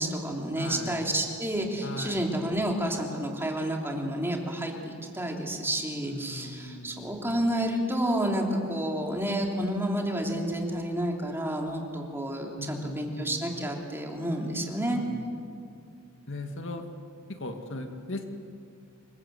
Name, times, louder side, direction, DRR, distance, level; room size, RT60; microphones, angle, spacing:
voice 1, 0.0-15.0, right 1 dB, 10° right, 1 dB, 3.1 m, -30 dB
voice 2, 0.5-1.0 1.8-2.2 6.1-7.1 12.6-13.6 15.0-15.3 16.3-16.8 17.3-18.2, left 2 dB, 60° left, 5 dB, 2.1 m, -38 dB
27.0 x 22.5 x 8.1 m, 2.5 s
head